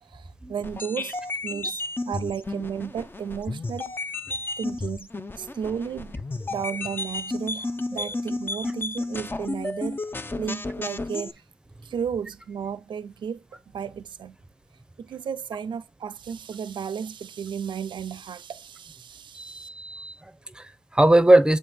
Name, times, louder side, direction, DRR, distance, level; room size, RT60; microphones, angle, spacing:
voice 1, 0.0-3.9 4.6-5.1 5.3-6.1 6.5-10.0 10.4-11.4 11.8-13.4 13.7-14.4 15.0-19.7, right 7 dB, 70° right, 0.4 m, -33 dB
sound 1, 0.6-11.3, left 2 dB, 25° left, 0.5 m, -32 dB
voice 2, 19.3-21.6, right 1 dB, 10° right, 0.7 m, -21 dB
7.4 x 2.6 x 5.1 m
cardioid pair, 55°, 8 cm